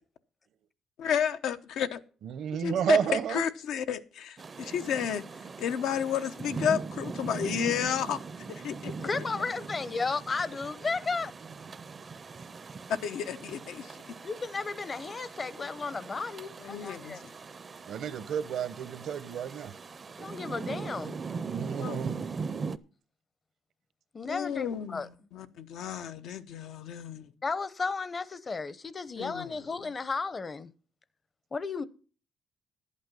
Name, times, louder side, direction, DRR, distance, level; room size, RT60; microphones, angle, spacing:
voice 1, 1.0-2.0 2.6-5.2 5.6-8.2 8.5-9.1 12.9-14.1 16.6-17.2 21.8-22.1 24.3-27.3 29.2-29.9, left 8 dB, 85° left, 0.8 m, -32 dB
voice 2, 2.2-3.4 17.9-19.7 21.5-22.2, right 8 dB, 75° right, 1.0 m, -31 dB
Rain, 4.4-22.8, right 5 dB, 35° right, 0.6 m, -40 dB
voice 3, 9.0-11.3 14.2-17.2 20.2-21.2 24.1-25.1 27.4-30.7 31.5-31.9, left 4 dB, 35° left, 0.7 m, -34 dB
11.0 x 8.6 x 5.3 m
cardioid pair, 90°, 0 cm